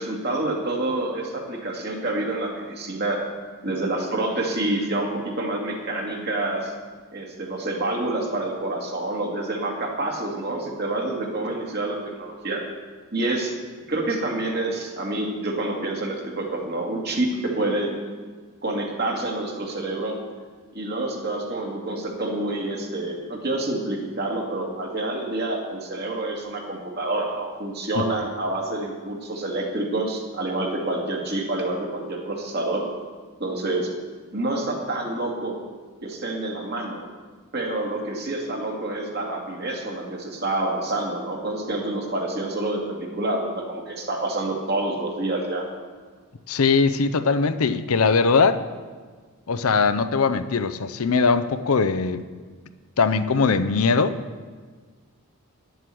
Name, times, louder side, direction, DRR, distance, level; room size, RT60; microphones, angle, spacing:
voice 1, 0.0-3.2 3.6-6.7 7.1-12.6 13.1-13.5 13.9-17.9 18.6-20.2 20.7-32.8 33.4-33.9 34.3-35.6 36.0-37.0 37.5-45.6, right 2 dB, 45° right, 0 dB, 2.1 m, -27 dB
voice 2, 46.5-48.6 49.5-52.2 53.0-54.2, left 4 dB, 70° left, 11 dB, 0.6 m, -20 dB
10.0 x 7.8 x 7.7 m, 1.5 s
head